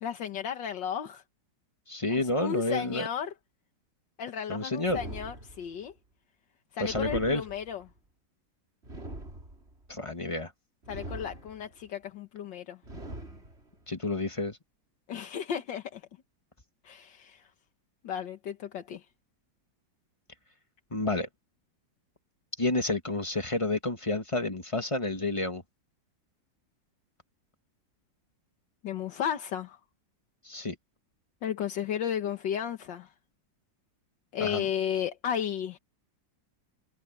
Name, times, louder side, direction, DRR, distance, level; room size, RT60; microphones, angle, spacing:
voice 1, 0.0-1.2 2.1-3.3 4.2-5.9 6.7-7.8 10.9-12.8 15.1-16.0 16.8-17.5 18.0-19.1 28.8-29.8 31.4-33.1 34.3-35.8, left 8 dB, 80° left, 1.9 m, -34 dB
voice 2, 1.9-3.1 4.5-5.0 6.8-7.4 9.9-10.5 13.9-14.6 20.9-21.3 22.6-25.6 30.4-30.8 34.4-34.7, left 2 dB, 20° left, 1.4 m, -29 dB
sound 1, 4.8-5.9 6.8-7.9 8.8-9.9 10.8-11.9 12.8-13.9, right 1 dB, 35° right, 4.7 m, -42 dB
omnidirectional pair, 2.0 m